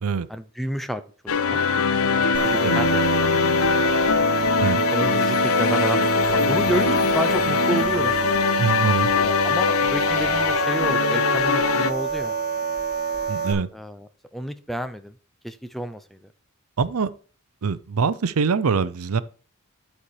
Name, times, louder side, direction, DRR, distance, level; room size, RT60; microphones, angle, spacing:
voice 1, 0.3-1.6 2.1-3.5 4.9-8.2 9.1-12.3 13.7-15.1 15.4-16.2, right 1 dB, ahead, 0.6 m, -30 dB
sound 1, 1.3-11.9, left 5 dB, 70° left, 0.7 m, -22 dB
sound 2, 2.3-13.5, right 5 dB, 40° right, 1.6 m, -27 dB
voice 2, 8.6-9.1 13.3-13.7 16.8-17.1 17.6-19.2, right 5 dB, 75° right, 0.6 m, -23 dB
11.5 x 4.4 x 4.8 m
head